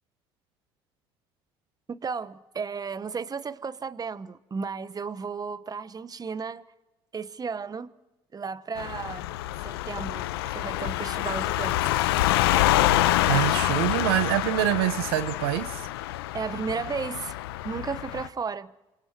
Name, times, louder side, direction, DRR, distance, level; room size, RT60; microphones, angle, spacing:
voice 1, 1.9-6.6 7.1-7.9 8.3-9.3 9.6-12.0 16.3-17.4 17.6-18.7, right 5 dB, 30° right, 1.1 m, -34 dB
sound 1, 8.8-18.3, left 15 dB, 85° left, 0.8 m, -26 dB
voice 2, 13.3-15.8, right 14 dB, 85° right, 0.9 m, -25 dB
28.0 x 25.5 x 4.7 m
hypercardioid pair, 65°, 12 cm